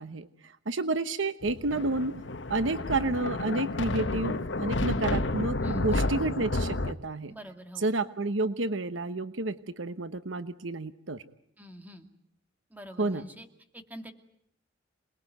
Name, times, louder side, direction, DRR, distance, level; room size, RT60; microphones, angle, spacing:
voice 1, 0.0-2.2 2.5-7.3 7.8-11.2 13.0-13.2, right 2 dB, 80° right, 12 dB, 1.1 m, -30 dB
Thunder, 1.4-6.9, left 2 dB, 70° left, 1.2 m, -31 dB
voice 2, 5.6-6.1 7.3-7.9 11.6-12.1 12.7-13.5 13.7-14.1, equal, 10° right, 6 dB, 2.4 m, -45 dB
27.5 x 20.5 x 9.3 m, 0.71 s
head